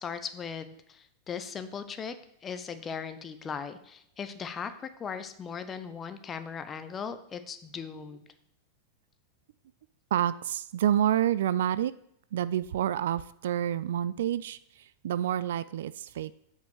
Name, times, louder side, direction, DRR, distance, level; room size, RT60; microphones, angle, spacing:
voice 1, 0.0-2.1 2.4-8.2, left 6 dB, 25° left, 10 dB, 0.9 m, -38 dB
voice 2, 10.1-11.9 12.3-16.4, right 11 dB, 60° right, 16 dB, 0.3 m, -28 dB
7.9 x 5.5 x 6.3 m, 0.71 s
figure-of-eight pair, 90°, 0 cm